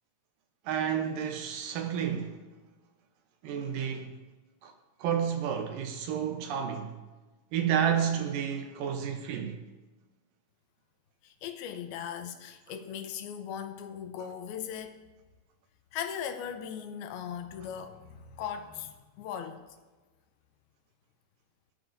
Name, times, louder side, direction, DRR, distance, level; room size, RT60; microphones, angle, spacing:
voice 1, 0.7-2.4 3.4-4.1 4.6-4.7 5.0-7.0 7.5-9.6, right 8 dB, 75° right, 2.3 m, -30 dB
voice 2, 11.2-15.0 15.9-19.7, left 8 dB, 80° left, 2.7 m, -39 dB
19.0 x 10.0 x 2.6 m
omnidirectional pair, 4.4 m